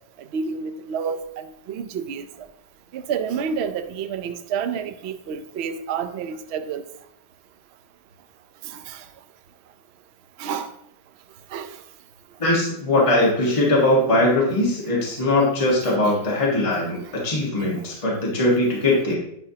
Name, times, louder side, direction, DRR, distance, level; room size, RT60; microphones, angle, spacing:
voice 1, 0.3-2.3 2.9-6.8 8.7-9.0 10.4-10.7 11.5-11.7 16.0-16.1 17.0-17.2, right 6 dB, 70° right, 0.6 m, -29 dB
voice 2, 12.4-19.2, left 1 dB, 20° left, 1.6 m, -20 dB
9.8 x 5.8 x 2.8 m
omnidirectional pair, 1.8 m